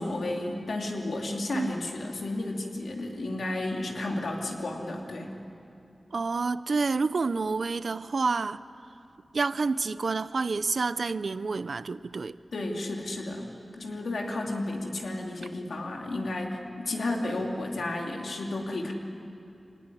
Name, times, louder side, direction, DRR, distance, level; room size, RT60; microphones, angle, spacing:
voice 1, 0.0-5.3 12.5-18.9, left 2 dB, 85° left, 3.0 m, -32 dB
voice 2, 6.1-8.6 9.3-12.4, right 4 dB, 65° right, 0.6 m, -28 dB
25.0 x 18.5 x 9.9 m
wide cardioid pair, 105°, 0 cm